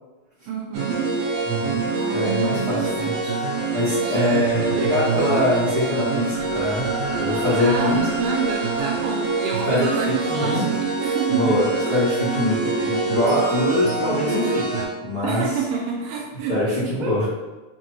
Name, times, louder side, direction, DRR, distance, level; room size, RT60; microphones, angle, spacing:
voice 1, 0.5-1.1 1.9-3.4 3.9-4.4 7.6-11.5 12.5-12.6 15.2-16.5 17.0-17.1, right 5 dB, 80° right, -1 dB, 2.1 m, -28 dB
sound 1, 0.7-14.8, right 4 dB, 60° right, 2.2 m, -25 dB
voice 2, 1.4-1.8 2.1-3.1 3.7-6.9 7.1-8.0 9.7-10.6 11.3-11.6 11.9-15.5 16.5-17.2, left 2 dB, 85° left, -14 dB, 1.0 m, -23 dB
5.9 x 2.3 x 3.0 m, 1.2 s
omnidirectional pair, 4.2 m